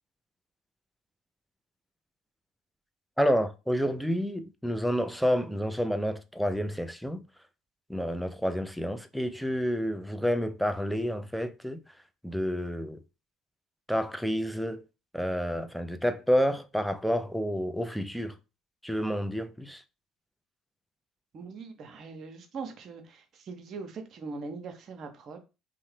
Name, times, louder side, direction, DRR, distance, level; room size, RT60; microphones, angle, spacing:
voice 1, 3.2-7.2 7.9-11.8 12.2-13.0 13.9-14.8 15.1-18.4 18.8-19.8, equal, ahead, 0.4 m, -29 dB
voice 2, 21.3-25.4, right 4 dB, 50° right, 0.7 m, -41 dB
2.7 x 2.1 x 3.1 m
hypercardioid pair, 65°, 0 cm